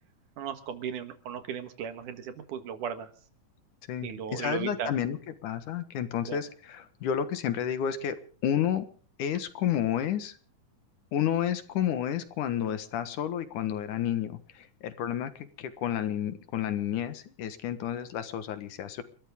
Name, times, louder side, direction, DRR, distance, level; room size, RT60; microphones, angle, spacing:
voice 1, 0.4-3.1 4.0-4.9 6.3-6.4, right 8 dB, 75° right, 10 dB, 3.0 m, -36 dB
voice 2, 3.9-8.9 9.2-10.4 11.1-19.0, left 10 dB, 75° left, 11 dB, 2.9 m, -31 dB
29.5 x 13.0 x 3.7 m, 0.41 s
omnidirectional pair, 3.7 m